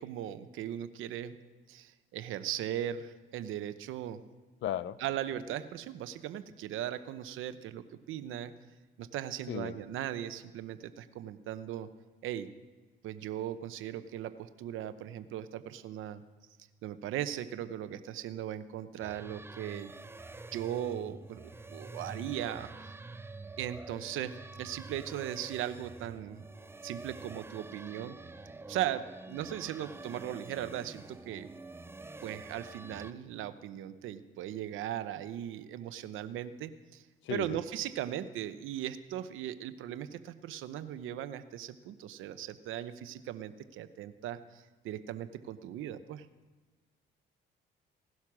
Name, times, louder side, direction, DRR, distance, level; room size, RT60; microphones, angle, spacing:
voice 1, 0.0-1.3 1.7-4.2 5.0-8.5 9.0-11.9 12.2-12.5 13.0-16.2 16.8-19.9 20.5-22.9 23.6-26.4 26.8-28.2 28.7-31.5 32.2-37.0 37.3-46.3, right 11 dB, 85° right, 12 dB, 0.9 m, -38 dB
voice 2, 4.6-5.0 9.5-9.8 37.3-37.6, left 11 dB, 70° left, 16 dB, 0.6 m, -35 dB
sound 1, 19.0-33.1, right 3 dB, 10° right, 0.5 m, -47 dB
17.5 x 12.0 x 6.1 m, 1.3 s
cardioid pair, 90°, 20 cm